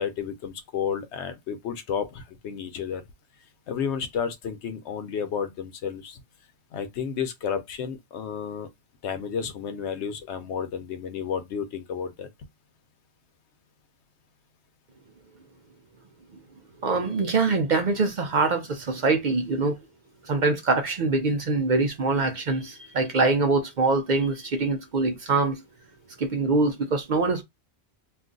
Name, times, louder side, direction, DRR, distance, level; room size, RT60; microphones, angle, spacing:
voice 1, 0.0-3.0 3.7-6.2 6.7-8.7 9.0-12.3, left 7 dB, 85° left, 0.9 m, -31 dB
voice 2, 16.8-19.8 20.2-25.6 26.2-27.4, right 3 dB, 55° right, 0.6 m, -24 dB
2.6 x 2.3 x 3.7 m
omnidirectional pair, 1.1 m